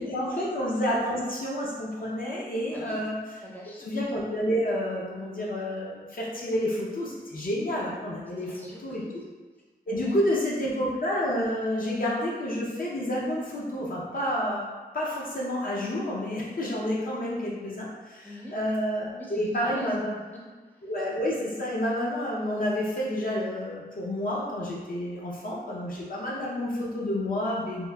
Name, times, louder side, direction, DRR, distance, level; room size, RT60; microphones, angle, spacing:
voice 1, 0.0-3.2 3.8-9.0 9.9-14.6 14.9-20.1 20.8-27.9, equal, 55° left, -5 dB, 0.5 m, -29 dB
voice 2, 2.7-3.0 3.4-3.9 8.4-9.3 9.9-10.2 18.2-18.6 19.2-20.9, left 1 dB, 10° left, -6 dB, 0.6 m, -44 dB
3.0 x 2.3 x 2.2 m, 1.3 s
wide cardioid pair, 115°, 18 cm